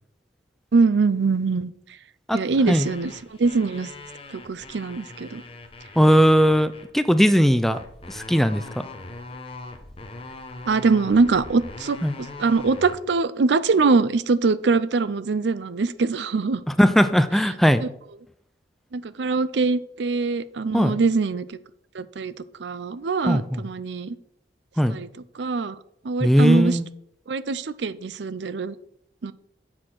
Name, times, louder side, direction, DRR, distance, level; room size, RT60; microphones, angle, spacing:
voice 1, 0.7-1.7 2.3-3.1 3.4-3.9 4.3-5.4 10.7-16.6 18.9-21.6 21.9-22.3 22.6-24.2 24.9-25.1 25.4-25.8 26.0-26.8 27.3-28.7 29.2-29.3, right 4 dB, 80° right, 16 dB, 0.5 m, -23 dB
sound 1, 2.5-6.9 7.7-13.0, left 2 dB, 30° left, 1.0 m, -41 dB
voice 2, 6.0-7.8 8.1-8.9 12.0-12.2 16.7-17.8 20.7-21.0 23.3-23.6 24.8-25.0 26.2-26.9, equal, ahead, 11 dB, 0.4 m, -18 dB
7.5 x 6.5 x 6.0 m, 0.73 s
head